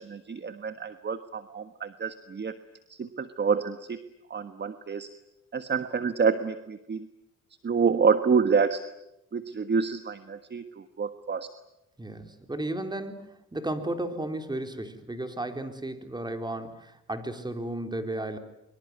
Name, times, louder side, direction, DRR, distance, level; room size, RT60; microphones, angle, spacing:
voice 1, 0.0-2.6 2.9-4.0 4.3-5.1 5.5-7.1 7.6-8.8 9.3-11.5, right 5 dB, 35° right, 10 dB, 1.5 m, -27 dB
voice 2, 12.0-18.4, right 1 dB, 15° right, 7 dB, 3.9 m, -34 dB
24.5 x 24.0 x 9.6 m, 0.85 s
cardioid pair, 90°, 30 cm